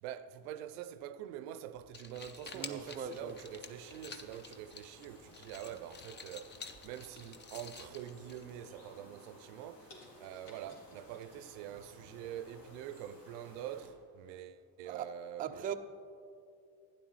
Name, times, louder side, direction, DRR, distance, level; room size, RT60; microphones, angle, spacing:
voice 1, 0.0-15.7, right 10 dB, 70° right, 0.6 m, -45 dB
sound 1, 1.8-8.8, left 5 dB, 20° left, 0.6 m, -51 dB
sound 2, 2.4-13.9, left 1 dB, 85° left, 2.3 m, -58 dB
voice 2, 2.5-3.4 14.9-15.1 15.4-15.7, right 8 dB, 20° right, 0.4 m, -39 dB
sound 3, 6.9-8.0 8.4-8.8 9.3-9.4 9.9-11.6 12.0-12.1, left 1 dB, 55° left, 2.6 m, -59 dB
11.5 x 9.4 x 3.1 m
hypercardioid pair, 75°, 49 cm